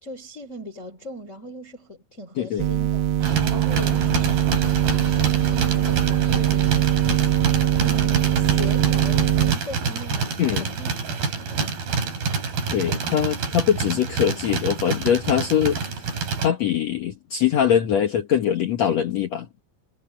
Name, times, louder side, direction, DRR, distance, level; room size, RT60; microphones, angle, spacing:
voice 1, 0.0-3.1 3.5-4.3 5.1-7.0 7.8-11.8, left 1 dB, 20° left, 3.3 m, -39 dB
sound 1, 2.6-9.6, right 11 dB, 90° right, 3.2 m, -21 dB
sound 2, 3.2-16.5, right 5 dB, 65° right, 6.4 m, -27 dB
voice 2, 10.4-10.7 12.7-16.1 16.4-19.5, left 9 dB, 60° left, 1.8 m, -22 dB
omnidirectional pair, 4.6 m